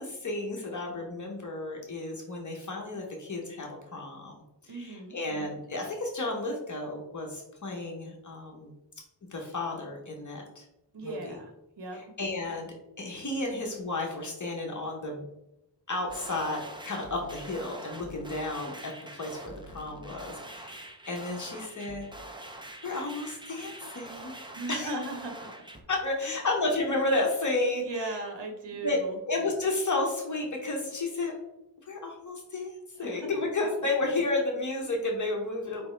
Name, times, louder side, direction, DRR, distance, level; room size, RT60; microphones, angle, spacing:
voice 1, 0.0-4.3 4.6-8.7 9.3-10.6 11.0-11.3 11.9-15.3 15.9-22.1 22.8-24.4 24.7-25.0 25.9-28.1 28.8-29.0 29.3-31.3 31.9-35.9, left 2 dB, 45° left, 0 dB, 0.8 m, -32 dB
voice 2, 4.7-5.2 10.9-12.0 24.5-25.6 26.2-26.3 27.8-29.2 33.0-33.1, right 2 dB, 80° right, 3 dB, 1.0 m, -37 dB
sound 1, 16.1-25.8, right 1 dB, 10° right, 0.4 m, -45 dB
4.8 x 3.3 x 3.1 m, 0.88 s
wide cardioid pair, 165°, 42 cm